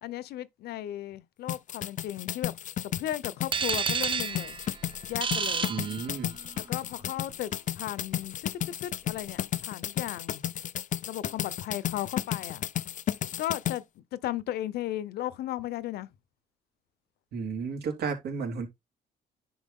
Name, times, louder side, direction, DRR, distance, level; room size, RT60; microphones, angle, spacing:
voice 1, 0.0-2.5 3.0-4.6 5.1-5.7 6.6-8.5 8.8-10.4 11.1-12.6 13.4-16.1, left 13 dB, 80° left, 0.9 m, -35 dB
sound 1, 1.5-13.8, left 11 dB, 50° left, 0.6 m, -33 dB
sound 2, 3.5-6.6, right 6 dB, 30° right, 0.6 m, -31 dB
voice 2, 5.7-6.3 17.3-18.7, right 5 dB, 75° right, 3.3 m, -33 dB
10.5 x 4.8 x 3.7 m
cardioid pair, 95°, 16 cm